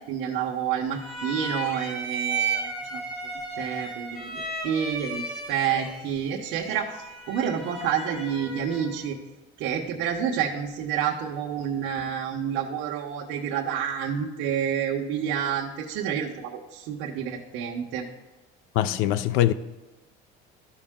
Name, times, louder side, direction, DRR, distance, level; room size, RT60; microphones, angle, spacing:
voice 1, 0.1-3.0 3.6-5.2 5.5-9.2 9.6-18.0, right 8 dB, 70° right, 1.1 m, -29 dB
sound 1, 0.9-9.0, right 3 dB, 25° left, 3.1 m, -34 dB
voice 2, 18.8-19.5, left 13 dB, 80° left, 0.5 m, -22 dB
13.5 x 5.4 x 3.7 m
cardioid pair, 165°, 20 cm